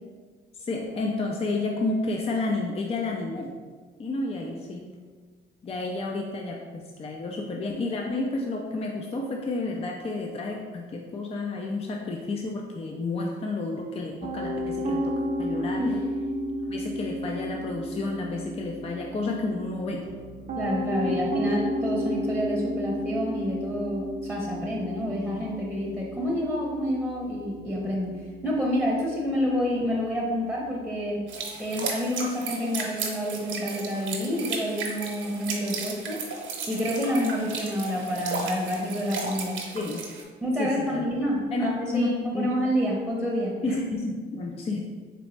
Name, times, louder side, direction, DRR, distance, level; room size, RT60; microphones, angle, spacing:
voice 1, 0.5-3.6 4.0-4.9 5.6-15.9 16.7-20.1 21.0-21.2 39.7-40.0 40.6-41.1 41.5-42.5 43.6-44.9, left 2 dB, 30° left, 0 dB, 0.4 m, -31 dB
Piano, 14.2-31.3, equal, 40° right, 0.6 m, -33 dB
voice 2, 20.5-28.2 28.4-31.2 31.6-36.2 36.7-39.6 40.4-43.8, equal, 5° left, -3 dB, 0.8 m, -28 dB
sound 1, 31.3-40.2, right 4 dB, 70° right, 0.8 m, -35 dB
4.0 x 3.1 x 3.2 m, 1.5 s
cardioid pair, 90°, 20 cm